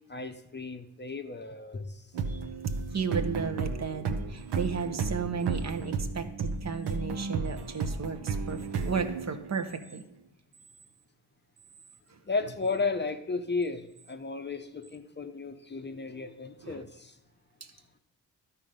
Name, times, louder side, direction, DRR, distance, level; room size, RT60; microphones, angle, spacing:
voice 1, 0.1-2.0 2.3-2.4 12.3-17.1, left 4 dB, 25° left, 7 dB, 0.6 m, -34 dB
sound 1, 2.1-9.8, right 4 dB, 75° right, 0.9 m, -33 dB
voice 2, 2.9-10.0 12.1-12.2 16.6-16.8 17.6-17.7, right 6 dB, 40° right, 7 dB, 0.9 m, -34 dB
12.0 x 4.4 x 5.1 m, 0.85 s
cardioid pair, 55°, 40 cm